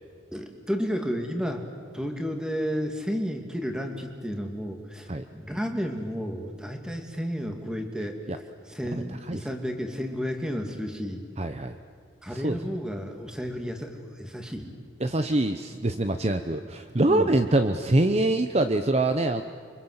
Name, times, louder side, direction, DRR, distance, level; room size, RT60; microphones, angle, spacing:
voice 1, 0.3-1.7 1.9-8.2 8.7-11.2 12.2-14.7 17.1-17.3, equal, 5° right, 3 dB, 2.7 m, -32 dB
voice 2, 8.9-9.4 11.4-11.8 12.3-12.6 15.0-19.4, right 2 dB, 35° right, 8 dB, 0.9 m, -24 dB
29.5 x 24.5 x 8.1 m, 2.2 s
head